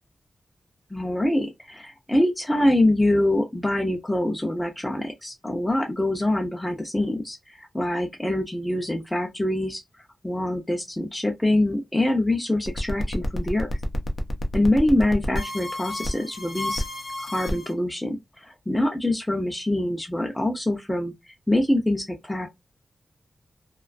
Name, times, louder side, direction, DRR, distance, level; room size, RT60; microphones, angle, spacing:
voice 1, 0.9-9.8 10.2-13.7 14.5-16.8 17.2-22.5, left 1 dB, 10° left, 0.5 m, -24 dB
sound 1, 12.7-17.7, left 1 dB, 65° left, 0.5 m, -31 dB
2.4 x 2.2 x 2.3 m
wide cardioid pair, 85°, 0 cm